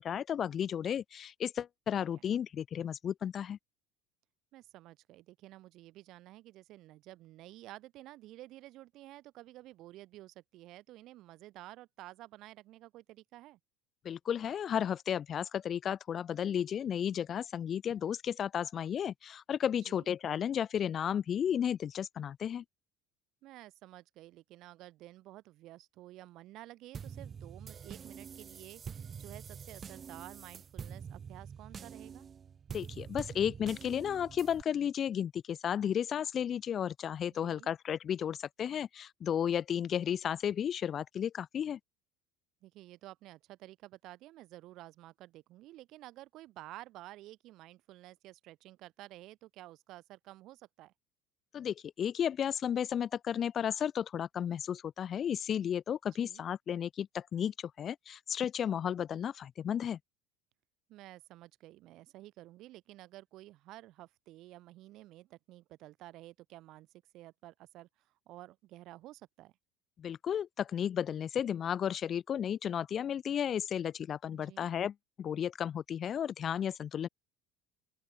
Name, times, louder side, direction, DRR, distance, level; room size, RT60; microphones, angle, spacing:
voice 1, 0.0-3.6 14.0-22.6 32.7-41.8 51.5-60.0 70.0-77.1, left 9 dB, 40° left, 1.1 m, -33 dB
voice 2, 4.5-13.6 19.8-20.1 23.4-32.3 37.3-37.7 42.6-50.9 56.1-56.5 60.9-66.9 67.1-67.9 68.3-69.5 74.3-74.7, right 16 dB, 55° right, 5.7 m, -52 dB
sound 1, 26.9-34.6, right 7 dB, 35° right, 1.8 m, -46 dB
open air
hypercardioid pair, 70°, 0 cm